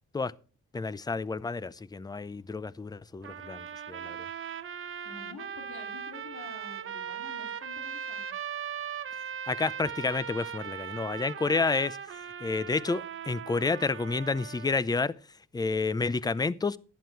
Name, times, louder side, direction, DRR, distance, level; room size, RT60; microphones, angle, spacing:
voice 1, 0.7-4.3 9.5-12.0 12.4-15.1 15.5-16.8, left 4 dB, 15° left, 0.5 m, -30 dB
sound 1, 3.2-14.8, right 8 dB, 45° right, 0.8 m, -39 dB
voice 2, 5.0-8.3, left 4 dB, 70° left, 2.4 m, -48 dB
11.5 x 9.3 x 4.5 m
cardioid pair, 90°, 30 cm